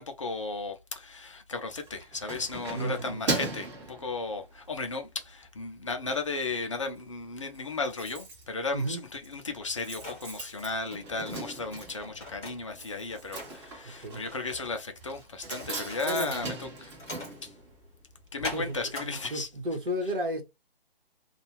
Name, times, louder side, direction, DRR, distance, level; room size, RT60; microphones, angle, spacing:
voice 1, 0.0-16.9 17.4-17.5 18.3-19.5, left 3 dB, 30° left, 0.5 m, -35 dB
Keys jangling, 1.7-4.8 5.2-5.4 5.8-6.5 6.8-6.9 7.1-7.2 7.4-18.2 18.5-18.6, right 2 dB, 30° right, 1.2 m, -39 dB
voice 2, 2.7-3.3 8.7-9.0 13.8-14.2 16.0-16.3 18.4-20.4, equal, 60° right, 1.2 m, -33 dB
sound 1, 9.1-19.1, left 2 dB, 10° left, 1.2 m, -45 dB
2.6 x 2.3 x 3.0 m
figure-of-eight pair, 140°, 30 cm